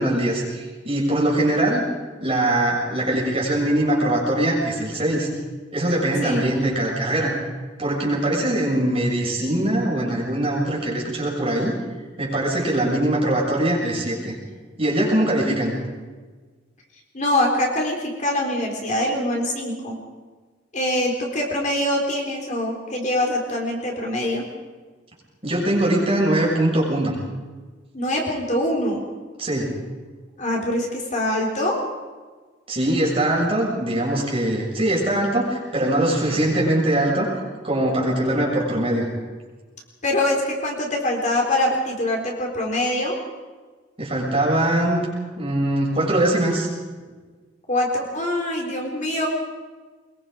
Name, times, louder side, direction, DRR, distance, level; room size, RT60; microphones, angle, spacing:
voice 1, 0.0-1.8 2.2-5.3 5.7-7.3 7.8-11.7 12.2-14.4 14.8-15.7 25.4-27.2 29.4-29.7 32.7-37.3 37.6-39.1 44.0-45.0 45.4-46.7, right 1 dB, 30° right, -3 dB, 7.0 m, -22 dB
voice 2, 6.2-6.6 17.1-20.0 20.7-24.4 27.9-29.0 30.4-31.8 40.0-43.1 47.7-49.3, left 1 dB, 40° left, 0 dB, 3.9 m, -24 dB
23.0 x 22.5 x 5.1 m, 1.4 s
head